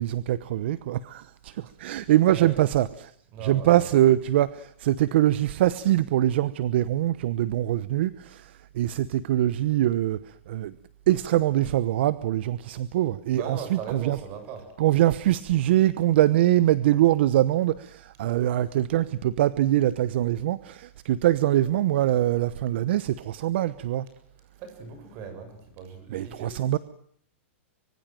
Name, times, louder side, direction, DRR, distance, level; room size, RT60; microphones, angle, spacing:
voice 1, 0.0-3.1 3.4-10.7 11.1-14.2 14.8-24.1 26.1-26.8, right 13 dB, 60° right, 17 dB, 1.0 m, -23 dB
voice 2, 2.3-2.6 3.3-3.9 13.3-14.7 24.6-26.5, right 6 dB, 35° right, 9 dB, 7.4 m, -39 dB
25.0 x 24.0 x 7.7 m, 0.62 s
hypercardioid pair, 150°, 7 cm